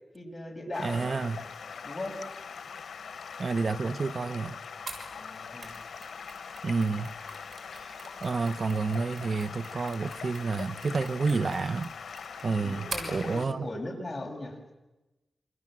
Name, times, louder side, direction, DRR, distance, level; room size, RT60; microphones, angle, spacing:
voice 1, 0.1-1.1 1.8-2.2 5.1-5.8 12.6-14.6, left 1 dB, 25° left, 2 dB, 6.4 m, -38 dB
Stream, 0.7-13.4, left 6 dB, 90° left, 1.0 m, -42 dB
voice 2, 0.8-1.4 3.4-4.6 6.6-7.1 7.7-7.9 8.2-11.9 12.4-13.7, right 4 dB, 55° right, 12 dB, 0.9 m, -29 dB
Mechanisms, 4.9-13.2, right 3 dB, 70° right, 6.3 m, -46 dB
28.0 x 27.0 x 7.6 m, 1.1 s
wide cardioid pair, 90°, 0 cm